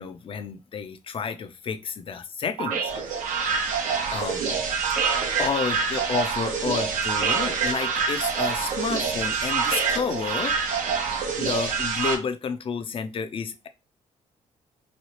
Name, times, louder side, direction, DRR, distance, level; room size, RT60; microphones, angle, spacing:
voice 1, 0.0-2.9 4.1-4.5 5.4-10.6 11.4-13.7, left 6 dB, 45° left, 0.5 m, -30 dB
sound 1, 2.6-12.1, right 5 dB, 80° right, 0.8 m, -26 dB
3.1 x 2.3 x 2.8 m
cardioid pair, 95°, 13 cm